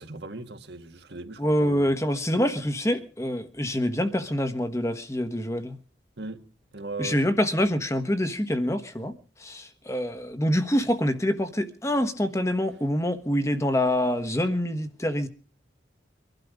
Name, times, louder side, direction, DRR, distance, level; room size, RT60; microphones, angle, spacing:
voice 1, 0.0-1.9 6.2-6.4 6.7-7.2, right 2 dB, 65° right, 1.8 m, -38 dB
voice 2, 1.4-5.8 7.0-9.1 9.4-15.3, equal, 15° left, 1.3 m, -26 dB
24.0 x 12.0 x 5.0 m
head